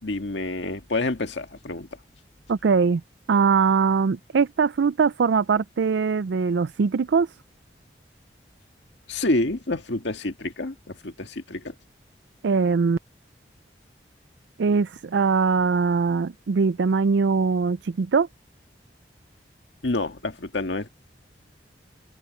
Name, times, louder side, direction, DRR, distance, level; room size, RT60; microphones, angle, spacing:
voice 1, 0.0-1.9 9.1-11.8 19.8-20.9, left 2 dB, 90° left, 1.8 m, -28 dB
voice 2, 2.5-3.0 3.3-7.3 12.4-13.0 14.6-18.3, right 5 dB, 85° right, 0.4 m, -21 dB
open air
head